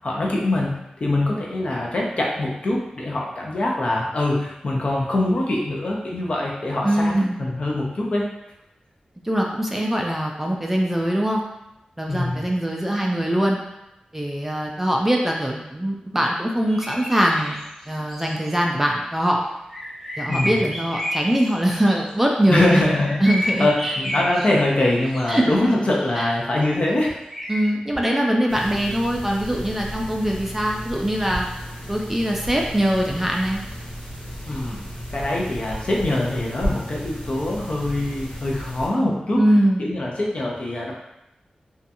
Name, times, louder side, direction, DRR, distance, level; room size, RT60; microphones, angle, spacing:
voice 1, 0.0-7.1 7.4-8.2 12.1-12.5 20.3-20.6 22.5-27.2 34.5-34.8 35.1-39.4 39.8-40.9, left 1 dB, 50° left, -3 dB, 0.5 m, -23 dB
voice 2, 6.8-7.4 9.2-11.4 12.0-13.6 14.1-17.6 17.9-19.4 20.2-22.8 23.2-23.9 25.3-25.5 26.2-26.3 27.5-31.5 31.9-33.6 39.4-39.9, right 1 dB, 10° right, -1 dB, 0.3 m, -22 dB
sound 1, 16.7-18.6 19.7-22.1 22.6-24.5 25.0-26.3 27.3-27.7, equal, 10° left, 0.7 m, -31 dB
sound 2, 28.5-38.9, equal, 80° left, 0.9 m, -34 dB
2.7 x 2.3 x 2.5 m, 0.88 s
wide cardioid pair, 110°, 3 cm